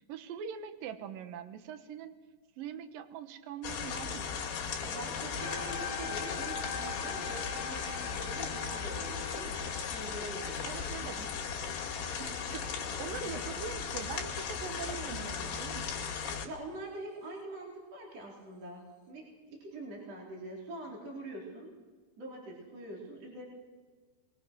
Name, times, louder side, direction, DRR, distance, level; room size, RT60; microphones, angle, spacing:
voice 1, 0.0-2.2 2.6-4.4 10.7-11.2 12.2-12.7 13.0-16.2, right 8 dB, 65° right, 10 dB, 2.4 m, -42 dB
sound 1, 3.6-16.5, left 6 dB, 65° left, 4.3 m, -37 dB
voice 2, 4.8-11.3 13.2-13.3 16.4-21.7 22.2-23.4, right 1 dB, 35° right, -2 dB, 4.8 m, -44 dB
sound 2, 5.4-13.8, left 5 dB, 20° left, 4.1 m, -44 dB
23.5 x 23.0 x 6.3 m, 1.4 s
omnidirectional pair, 5.4 m